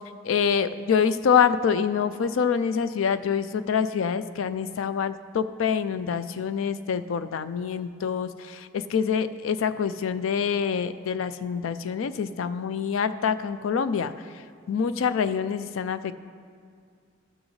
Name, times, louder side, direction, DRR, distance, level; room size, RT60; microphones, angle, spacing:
voice 1, 0.2-14.1 14.7-16.1, left 7 dB, 80° left, 13 dB, 0.4 m, -26 dB
15.0 x 6.3 x 3.2 m, 2.2 s
head